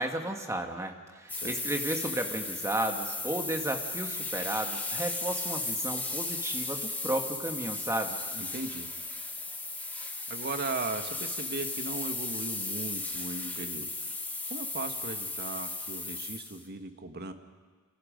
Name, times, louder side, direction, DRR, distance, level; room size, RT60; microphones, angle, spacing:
voice 1, 0.0-8.2, right 1 dB, 15° right, 4 dB, 1.7 m, -33 dB
sound 1, 1.3-16.6, left 3 dB, 10° left, 1.7 m, -35 dB
voice 2, 8.3-8.9 10.3-13.9 14.5-17.3, right 3 dB, 50° right, 7 dB, 1.7 m, -37 dB
28.5 x 27.5 x 5.2 m, 1.5 s
head